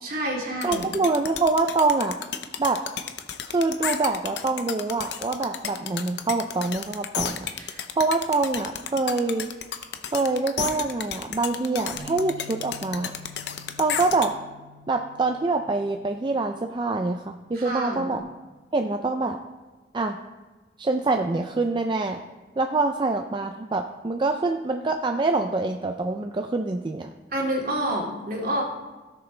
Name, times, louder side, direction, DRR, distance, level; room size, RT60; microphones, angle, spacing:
voice 1, 0.0-0.9 7.5-7.8 17.5-18.1 27.3-28.6, right 1 dB, 55° right, -3 dB, 2.4 m, -28 dB
sound 1, 0.6-14.3, left 8 dB, 75° left, 0.7 m, -32 dB
voice 2, 0.6-2.2 2.6-2.8 3.5-7.5 8.0-9.5 10.1-13.1 13.8-14.3 14.9-18.2 18.7-19.4 19.9-20.2 20.8-22.2 22.6-27.1, right 3 dB, 25° right, 4 dB, 0.4 m, -25 dB
Bass guitar, 12.0-18.2, left 2 dB, 35° left, 1.2 m, -49 dB
16.5 x 6.9 x 3.3 m, 1.3 s
head